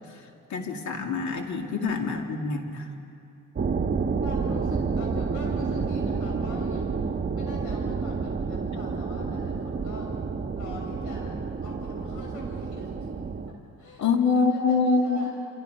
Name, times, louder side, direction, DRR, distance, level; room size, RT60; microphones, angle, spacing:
voice 1, 0.5-2.9 14.0-15.3, left 4 dB, 70° left, 3 dB, 2.3 m, -25 dB
voice 2, 1.6-1.9 4.2-7.0 7.3-10.1 10.5-11.3 11.6-13.1 13.8-15.3, left 2 dB, 90° left, -1 dB, 6.6 m, -43 dB
sound 1, 3.6-13.5, right 5 dB, 35° right, 1.3 m, -29 dB
26.5 x 17.5 x 5.6 m, 2.6 s
cardioid pair, 90°, 30 cm